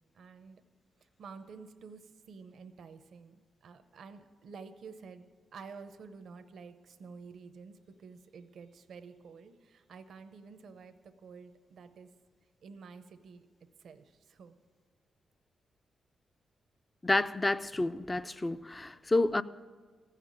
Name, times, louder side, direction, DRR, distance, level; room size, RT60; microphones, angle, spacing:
voice 1, 0.1-0.6 1.0-5.2 5.5-12.1 12.6-13.5 13.8-14.6, right 5 dB, 70° right, 0.7 m, -50 dB
voice 2, 17.0-19.4, left 2 dB, 20° left, 0.3 m, -29 dB
15.0 x 5.8 x 8.5 m
cardioid pair, 115°, 0 cm